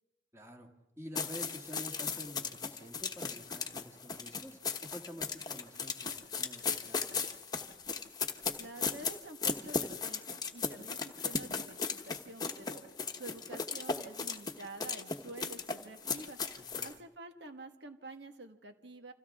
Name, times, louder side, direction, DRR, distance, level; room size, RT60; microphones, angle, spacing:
voice 1, 0.3-0.7 1.0-7.7 16.6-16.9, equal, 15° right, 3 dB, 2.2 m, -49 dB
sound 1, 1.1-16.9, left 5 dB, 25° left, 1.1 m, -37 dB
voice 2, 8.6-12.8 13.1-16.4 16.8-19.1, right 2 dB, 85° right, 6 dB, 1.6 m, -49 dB
29.5 x 26.5 x 3.6 m, 0.97 s
head